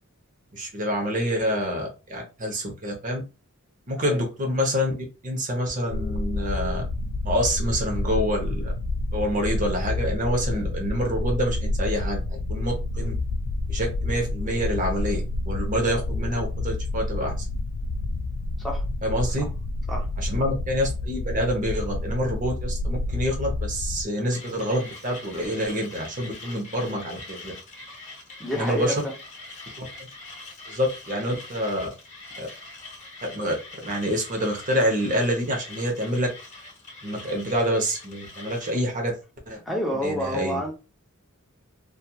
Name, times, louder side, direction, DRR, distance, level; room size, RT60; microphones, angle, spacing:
voice 1, 0.5-3.2 3.9-4.9 5.2-6.8 7.2-8.7 9.1-13.1 13.7-15.2 15.5-17.3 19.0-19.4 20.2-27.5 28.5-28.9 29.8-29.9 30.7-31.9 32.4-32.5 33.2-33.6 33.8-36.3 37.0-39.1 39.5-39.6 40.0-40.6, equal, 35° right, 0.8 m, -27 dB
sound 1, 5.9-24.0, left 2 dB, 75° left, 0.3 m, -29 dB
Mechanisms, 24.3-38.9, left 3 dB, 35° left, 1.1 m, -43 dB
voice 2, 28.4-29.1 39.7-40.7, equal, ahead, 0.6 m, -29 dB
2.8 x 2.4 x 2.3 m
head